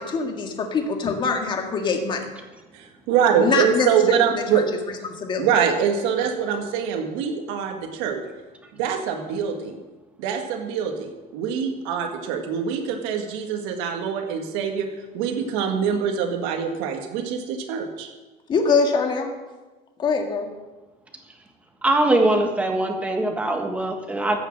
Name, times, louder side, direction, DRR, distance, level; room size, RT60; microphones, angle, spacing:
voice 1, 0.0-2.3 3.3-4.2 4.5-4.6 5.1-5.5 18.5-19.3 20.0-20.5, left 4 dB, 30° left, 3 dB, 1.9 m, -23 dB
voice 2, 2.7-4.7 5.4-8.2 8.7-9.8 10.2-14.9 15.1-18.1, right 7 dB, 80° right, 3 dB, 1.9 m, -24 dB
voice 3, 21.8-24.4, right 1 dB, 10° right, 2 dB, 1.5 m, -22 dB
15.0 x 6.5 x 7.5 m, 1.2 s
cardioid pair, 155°, 16 cm